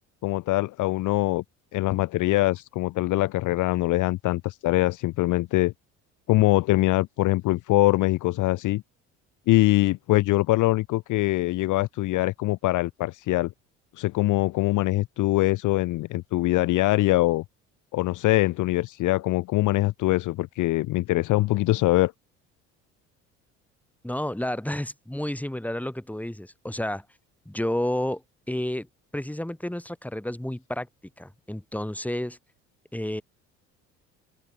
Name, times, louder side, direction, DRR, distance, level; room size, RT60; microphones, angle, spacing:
voice 1, 0.2-1.4 1.7-5.7 6.3-8.8 9.5-13.5 14.0-17.4 17.9-22.1, left 18 dB, 55° left, 0.7 m, -23 dB
voice 2, 24.0-27.0 27.4-28.2 28.5-28.9 29.1-30.9 31.2-32.4 32.9-33.2, left 1 dB, 5° left, 3.0 m, -30 dB
open air
hypercardioid pair, 60°, 37 cm